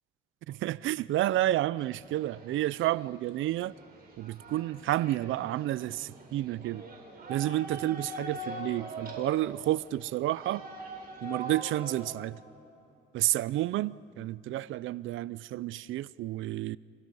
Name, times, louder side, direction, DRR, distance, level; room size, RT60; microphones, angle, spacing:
voice 1, 0.5-3.7 4.2-6.8 7.3-10.6 11.2-12.4 13.1-16.8, right 15 dB, 80° right, 0.5 m, -30 dB
sound 1, 1.8-12.1, right 2 dB, 50° right, 4.9 m, -43 dB
29.0 x 25.5 x 5.5 m
cardioid pair, 90°, 20 cm